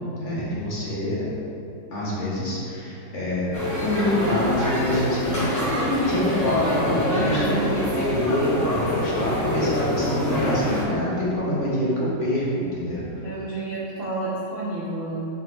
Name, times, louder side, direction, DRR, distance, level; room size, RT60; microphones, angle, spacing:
voice 1, 0.2-1.3 1.9-3.5 3.8-13.0, left 1 dB, 45° left, -7 dB, 1.6 m, -25 dB
sound 1, 3.5-10.8, left 1 dB, 10° left, 1.0 m, -26 dB
voice 2, 7.1-7.8 13.2-15.3, right 2 dB, 45° right, -8 dB, 0.8 m, -30 dB
4.8 x 4.6 x 5.9 m, 2.9 s
omnidirectional pair, 2.0 m